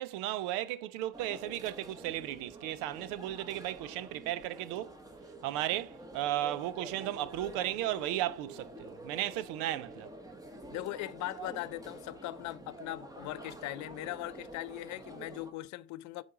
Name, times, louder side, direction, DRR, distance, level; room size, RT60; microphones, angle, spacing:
voice 1, 0.0-5.0 5.4-10.1, right 13 dB, 75° right, 0.6 m, -35 dB
sound 1, 1.1-15.5, right 1 dB, 10° right, 1.2 m, -48 dB
voice 2, 10.7-16.2, left 16 dB, 60° left, 0.5 m, -40 dB
7.5 x 4.1 x 4.8 m
supercardioid pair, 90°, 33 cm